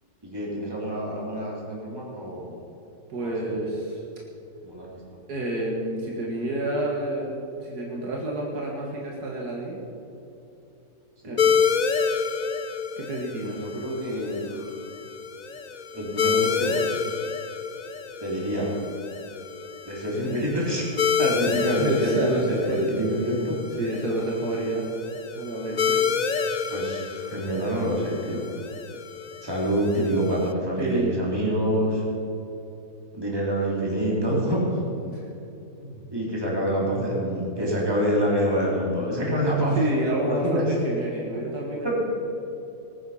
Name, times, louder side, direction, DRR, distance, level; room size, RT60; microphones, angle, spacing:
voice 1, 0.2-2.6 3.2-3.6 4.6-5.0 11.2-11.4 13.4-14.7 15.9-16.8 18.2-18.7 19.8-20.9 21.2-23.6 26.7-28.4 29.4-32.0 33.1-34.8 35.8-39.8 40.2-40.6 41.8-41.9, equal, 15° right, -4 dB, 3.2 m, -26 dB
voice 2, 3.1-4.0 5.3-9.8 11.2-11.7 13.0-13.6 21.8-22.9 23.8-24.9 25.4-26.0 30.8-31.2 35.0-35.3 39.8-41.9, right 1 dB, 85° right, -2 dB, 2.3 m, -29 dB
sound 1, 11.4-30.5, left 6 dB, 65° left, 0.4 m, -29 dB
19.0 x 10.0 x 5.6 m, 2.9 s
omnidirectional pair, 1.6 m